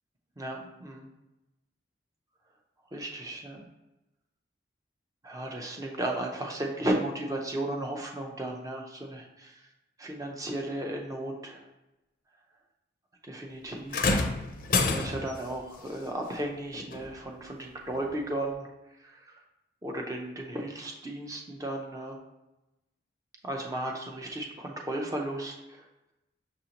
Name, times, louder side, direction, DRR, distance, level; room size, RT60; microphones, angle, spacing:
voice 1, 0.4-1.1 2.9-3.6 5.2-9.5 10.0-11.6 13.3-14.3 14.8-18.7 19.0-19.4 19.8-22.2 23.4-25.5, right 1 dB, 20° right, 0 dB, 0.5 m, -35 dB
sound 1, 13.9-15.4 16.9-17.1 17.9-18.0, left 3 dB, 45° left, 0.4 m, -27 dB
6.4 x 2.6 x 2.8 m, 0.99 s
head